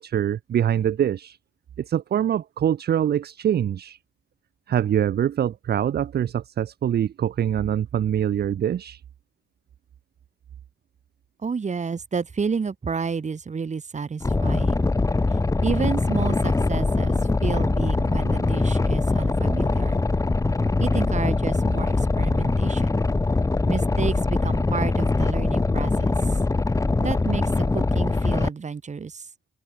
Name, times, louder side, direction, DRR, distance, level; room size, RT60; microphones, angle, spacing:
voice 1, 0.0-1.4 1.8-4.0 4.7-9.0, right 10 dB, 55° right, 1.0 m, -24 dB
voice 2, 11.4-14.8 15.6-20.0 20.8-23.0 23.7-26.4 27.0-29.3, right 5 dB, 35° right, 4.8 m, -30 dB
Boat Water vehicle, 14.2-28.5, left 3 dB, 15° left, 1.1 m, -22 dB
cardioid pair, 90°, 20 cm